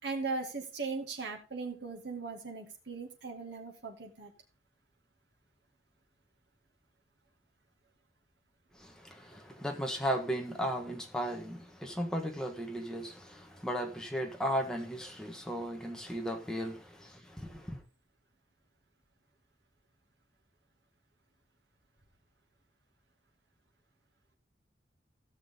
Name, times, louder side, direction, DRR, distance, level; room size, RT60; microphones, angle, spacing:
voice 1, 0.0-4.3, right 4 dB, 85° right, 2.4 m, -38 dB
voice 2, 8.8-17.8, equal, 5° left, 1.5 m, -36 dB
16.5 x 6.5 x 3.8 m
head